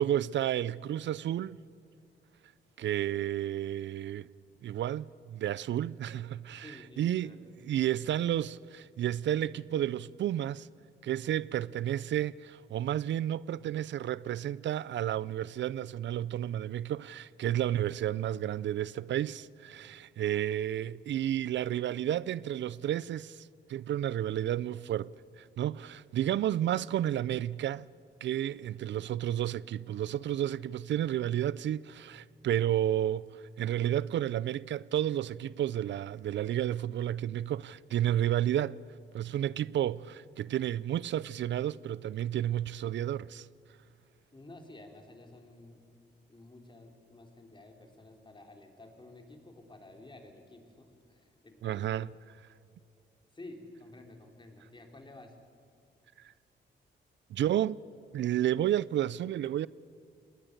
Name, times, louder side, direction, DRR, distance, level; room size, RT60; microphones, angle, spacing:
voice 1, 0.0-1.6 2.8-4.3 4.6-7.4 7.7-10.7 11.0-27.9 28.2-38.8 39.1-43.5 51.6-52.1 56.2-56.3 57.3-57.8 58.1-59.7, right 11 dB, 75° right, 0.4 m, -31 dB
voice 2, 6.6-7.8 44.3-45.8 46.3-52.1 53.3-55.3, left 2 dB, 25° left, 3.3 m, -52 dB
21.5 x 19.0 x 6.6 m
cardioid pair, 85°, 19 cm